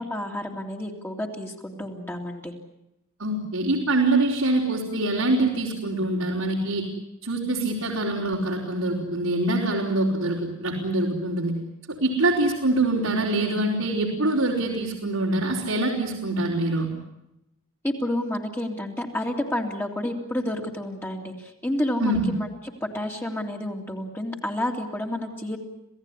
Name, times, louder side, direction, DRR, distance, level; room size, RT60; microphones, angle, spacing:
voice 1, 0.0-2.5 17.8-22.5 22.8-25.6, left 1 dB, 10° left, 1 dB, 2.6 m, -30 dB
voice 2, 3.2-6.9 7.2-11.5 11.9-16.9 22.0-22.3, right 2 dB, 85° right, -3 dB, 4.6 m, -24 dB
27.5 x 17.0 x 9.8 m, 0.87 s
head